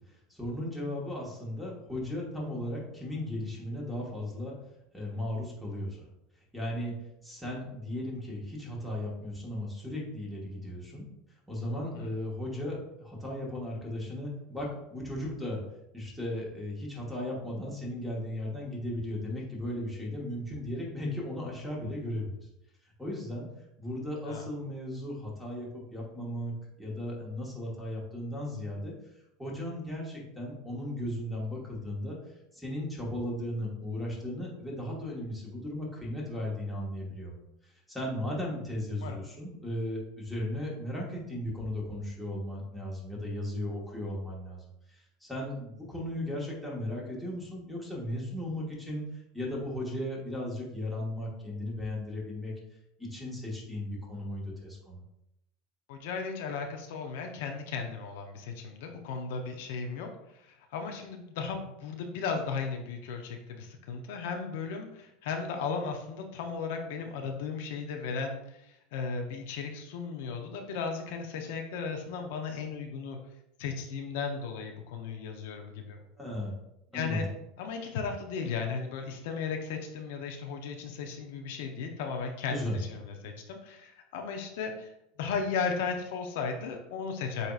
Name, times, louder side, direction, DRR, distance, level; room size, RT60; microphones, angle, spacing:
voice 1, 0.1-4.5 4.9-6.1 6.5-6.9 7.2-11.0 11.5-15.6 15.9-22.3 23.0-23.5 23.8-28.9 29.4-32.2 32.5-49.0 49.3-52.5 53.0-55.0 76.2-76.6 76.9-77.2 82.5-82.8, left 1 dB, ahead, -5 dB, 1.4 m, -36 dB
voice 2, 55.9-73.2 73.6-76.0 76.9-77.3 77.6-84.9 85.2-87.5, left 5 dB, 75° left, 4 dB, 0.6 m, -35 dB
7.9 x 2.8 x 2.4 m, 0.83 s
supercardioid pair, 135°, 0 cm